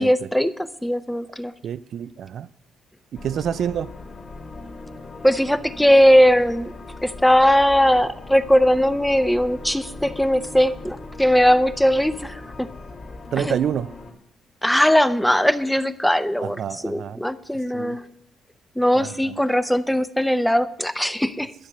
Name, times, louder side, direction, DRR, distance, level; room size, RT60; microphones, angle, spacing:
voice 1, 0.0-1.5 5.2-6.7 7.0-12.7 13.4-13.6 14.6-18.1 18.8-21.5, equal, 5° left, 0.6 m, -19 dB
voice 2, 1.6-2.5 3.1-3.9 13.3-13.9 16.4-17.2 17.7-18.0 18.9-19.3, right 9 dB, 65° right, 0.3 m, -28 dB
sound 1, 3.1-14.1, left 3 dB, 45° left, 2.1 m, -39 dB
12.0 x 6.8 x 7.7 m
cardioid pair, 100°, 0 cm